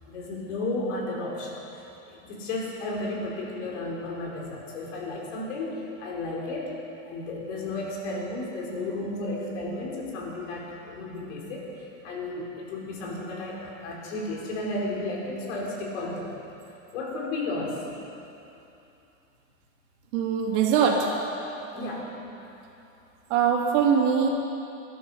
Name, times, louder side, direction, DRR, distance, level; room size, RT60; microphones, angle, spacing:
voice 1, 0.1-6.7 7.0-16.4 16.9-17.8 21.7-22.1, left 2 dB, 65° left, -2 dB, 4.6 m, -33 dB
voice 2, 20.1-21.1 23.3-24.3, right 7 dB, 60° right, -1 dB, 2.9 m, -22 dB
19.5 x 12.5 x 5.7 m, 2.9 s
supercardioid pair, 140°, 38 cm